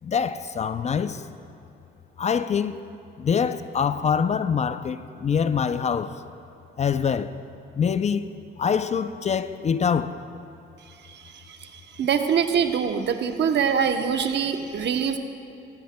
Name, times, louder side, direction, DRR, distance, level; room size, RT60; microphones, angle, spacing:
voice 1, 0.0-1.2 2.2-2.8 3.2-6.2 6.8-7.4 7.8-10.2, left 6 dB, 35° left, 0.4 m, -25 dB
voice 2, 11.1-15.2, right 7 dB, 60° right, 0.9 m, -24 dB
18.0 x 15.0 x 2.2 m
cardioid pair, 90°, 20 cm